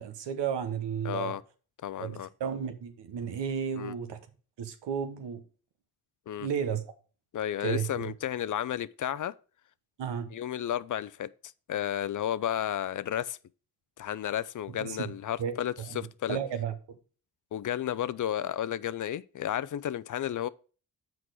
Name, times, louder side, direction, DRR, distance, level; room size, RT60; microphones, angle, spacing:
voice 1, 0.0-1.4 2.0-4.2 4.6-5.4 6.4-6.8 7.6-8.1 10.0-10.3 14.8-15.1 15.4-15.6 15.9-16.0 16.3-16.7, right 7 dB, 80° right, 1.1 m, -33 dB
voice 2, 1.0-1.4 1.8-2.3 3.8-3.9 6.3-6.5 7.3-9.3 10.3-11.3 11.7-13.4 14.0-16.4 17.5-20.5, left 11 dB, 50° left, 0.5 m, -32 dB
6.1 x 4.7 x 6.1 m
supercardioid pair, 50°, 42 cm